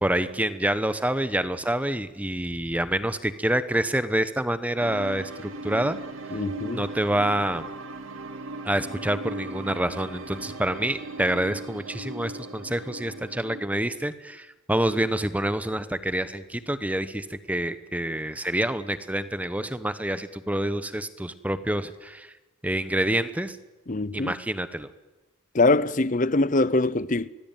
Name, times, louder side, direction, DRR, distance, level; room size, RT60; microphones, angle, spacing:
voice 1, 0.0-6.0 6.3-6.4 6.7-7.6 8.6-22.3 22.6-23.6 24.1-24.9, right 1 dB, 5° right, 1.0 m, -27 dB
sound 1, 4.8-13.6, right 2 dB, 70° right, 2.3 m, -38 dB
voice 2, 6.3-6.8 23.9-24.4 25.5-27.3, left 2 dB, 35° left, 0.8 m, -23 dB
25.0 x 19.5 x 9.2 m
head